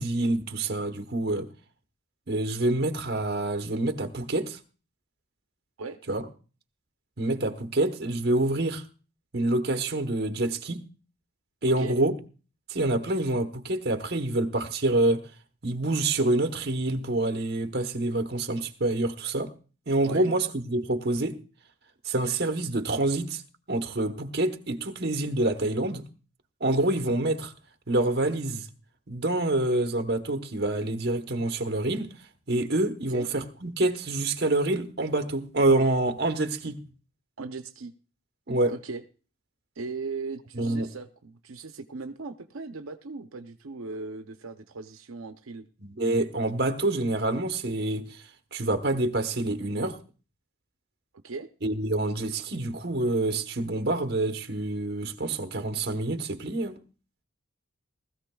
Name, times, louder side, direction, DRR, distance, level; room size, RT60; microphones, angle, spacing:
voice 1, 0.0-1.5 2.3-4.6 6.1-6.3 7.2-8.8 9.3-10.8 11.6-12.2 12.7-15.3 15.6-19.5 19.9-21.4 22.0-23.4 23.7-26.1 26.6-27.5 27.9-28.7 29.1-32.1 32.5-36.9 38.5-38.7 40.5-40.9 45.8-48.2 48.5-50.0 51.6-56.8, right 2 dB, 50° right, 1.1 m, -27 dB
voice 2, 37.4-37.9 38.7-39.0 39.8-45.7 51.2-51.5, right 4 dB, 80° right, 0.7 m, -38 dB
19.5 x 14.0 x 2.3 m
head